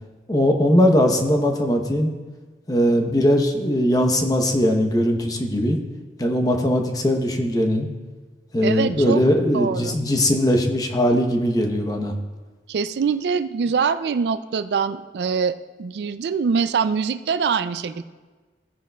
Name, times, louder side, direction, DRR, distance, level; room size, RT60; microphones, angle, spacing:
voice 1, 0.3-2.1 2.7-5.8 6.2-7.9 8.5-12.2, equal, 20° left, 3 dB, 0.8 m, -20 dB
voice 2, 8.6-9.2 9.5-9.9 12.7-18.0, right 6 dB, 65° right, 12 dB, 0.3 m, -24 dB
15.5 x 9.3 x 2.3 m, 1.3 s
head